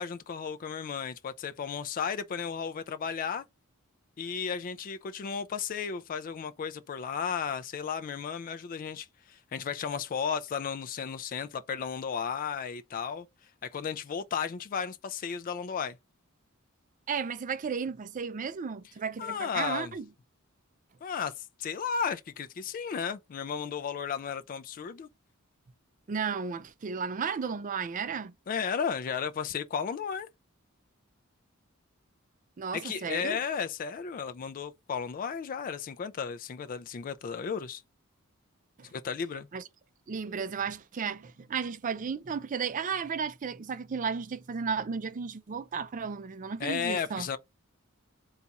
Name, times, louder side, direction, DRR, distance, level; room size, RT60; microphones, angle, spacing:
voice 1, 0.0-3.4 4.2-13.3 13.6-16.0 19.2-19.9 21.0-25.1 28.5-30.3 32.7-37.8 38.9-39.5 46.6-47.4, left 6 dB, 40° left, 0.3 m, -34 dB
voice 2, 17.1-20.0 26.1-28.3 32.6-33.4 38.8-38.9 39.5-39.6 40.1-47.3, right 6 dB, 40° right, 0.4 m, -34 dB
4.0 x 2.3 x 4.0 m
head